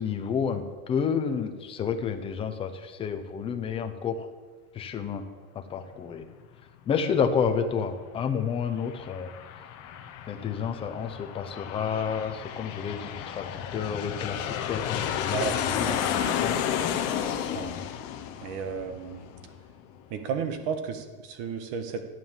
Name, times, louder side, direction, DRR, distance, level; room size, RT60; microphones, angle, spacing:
voice 1, 0.0-4.3 4.7-5.2 5.5-6.3 6.9-9.3 10.3-16.0 16.4-16.6 17.5-17.7, left 6 dB, 15° left, 6 dB, 0.6 m, -30 dB
Aircraft, 8.6-19.8, left 9 dB, 35° left, 1.0 m, -32 dB
voice 2, 15.3-16.0 16.4-16.6 17.3-17.7 18.4-19.3 20.1-22.0, right 6 dB, 40° right, 7 dB, 1.6 m, -33 dB
14.0 x 9.4 x 7.3 m, 1.4 s
supercardioid pair, 170°, 43 cm